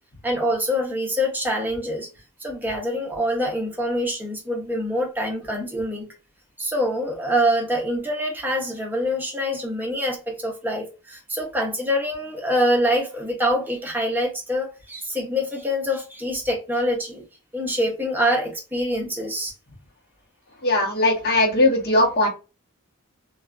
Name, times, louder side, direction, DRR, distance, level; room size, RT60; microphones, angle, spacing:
voice 1, 0.2-2.1 2.4-6.1 6.6-17.2 17.5-19.5, equal, 10° right, 0.7 m, -25 dB
voice 2, 20.6-22.3, left 2 dB, 45° left, 0.9 m, -19 dB
2.7 x 2.3 x 2.4 m
head